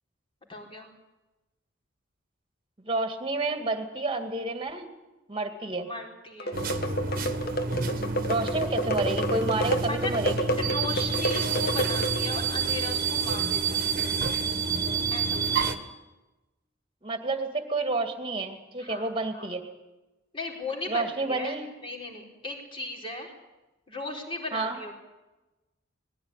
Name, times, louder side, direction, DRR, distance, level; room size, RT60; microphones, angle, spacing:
voice 1, 0.5-0.9 5.8-6.6 9.6-10.2 10.6-13.9 15.1-15.8 18.8-19.5 20.3-21.6 21.8-23.3 23.9-24.9, left 2 dB, 25° left, 0 dB, 4.2 m, -37 dB
voice 2, 2.8-4.9 5.3-5.9 8.2-10.5 17.0-19.6 20.9-21.7 24.5-24.8, right 2 dB, 25° right, 7 dB, 2.2 m, -30 dB
sound 1, 6.4-12.5, right 1 dB, 50° left, 1.5 m, -30 dB
sound 2, 6.5-15.8, right 5 dB, 45° right, 1.5 m, -29 dB
20.0 x 15.5 x 9.8 m, 1.1 s
head